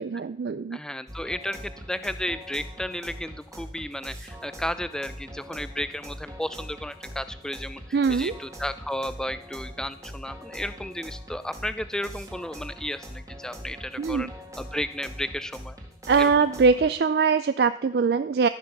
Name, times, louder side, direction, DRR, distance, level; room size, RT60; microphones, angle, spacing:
voice 1, 0.0-0.8 7.9-8.3 14.0-14.3 16.1-18.5, right 5 dB, 60° right, 13 dB, 0.4 m, -22 dB
voice 2, 0.7-14.3 14.6-15.8 16.2-16.3, left 1 dB, 5° left, 12 dB, 0.4 m, -33 dB
sound 1, 1.1-16.9, equal, 20° right, 1.8 m, -42 dB
14.0 x 5.8 x 6.7 m, 0.68 s
head